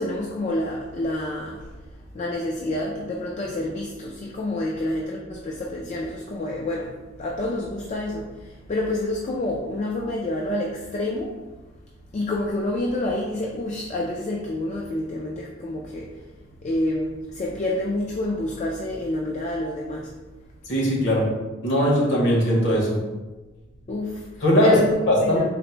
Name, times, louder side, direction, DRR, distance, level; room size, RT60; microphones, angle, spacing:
voice 1, 0.0-1.6 2.1-6.9 7.2-8.3 8.7-11.3 12.1-16.1 16.6-20.1 23.9-24.2 24.6-24.9 25.2-25.4, left 1 dB, 35° left, -1 dB, 0.3 m, -28 dB
voice 2, 20.7-21.3 21.6-23.0 24.4-24.8 25.1-25.5, equal, 65° left, -3 dB, 1.1 m, -20 dB
4.0 x 2.1 x 4.3 m, 1.2 s
head